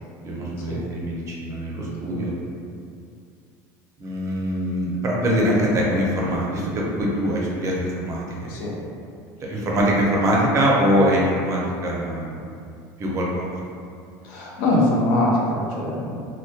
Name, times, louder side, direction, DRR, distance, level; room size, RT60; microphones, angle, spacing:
voice 1, 0.2-2.3 4.0-8.6 9.5-12.4 13.0-13.5, equal, 35° right, -3 dB, 0.5 m, -23 dB
voice 2, 14.2-16.2, left 1 dB, 75° left, -3 dB, 0.5 m, -22 dB
2.1 x 2.1 x 2.7 m, 2.4 s
supercardioid pair, 120°, 9 cm